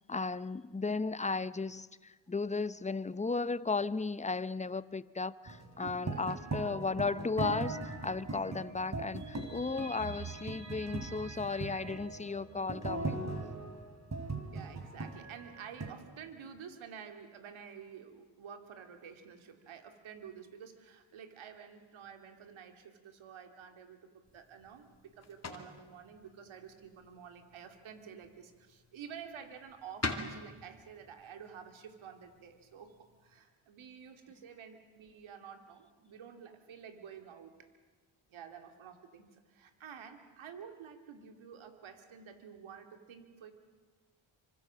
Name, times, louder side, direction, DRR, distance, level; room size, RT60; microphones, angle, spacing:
voice 1, 0.1-13.3, left 4 dB, 15° left, 16 dB, 0.7 m, -35 dB
sound 1, 5.5-15.9, right 3 dB, 35° right, 3.3 m, -40 dB
voice 2, 5.8-6.4 14.5-37.5 38.3-43.5, right 7 dB, 90° right, 6 dB, 2.4 m, -50 dB
sound 2, 24.2-33.4, left 3 dB, 35° left, 2.7 m, -46 dB
25.5 x 25.0 x 7.5 m, 1.4 s
cardioid pair, 70°, 46 cm